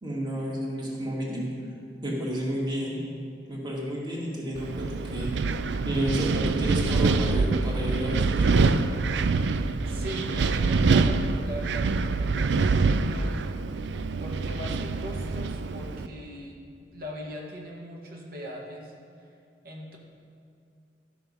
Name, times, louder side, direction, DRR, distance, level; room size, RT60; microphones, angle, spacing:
voice 1, 0.0-1.5 2.0-3.0 3.5-5.3 5.8-8.7, equal, 25° right, -4 dB, 2.0 m, -31 dB
Wind, 4.5-16.1, right 4 dB, 75° right, 0.4 m, -25 dB
voice 2, 9.8-13.5 14.2-16.6 16.9-18.9 19.6-20.0, equal, 55° right, -1 dB, 1.7 m, -40 dB
12.5 x 7.0 x 5.5 m, 2.4 s
head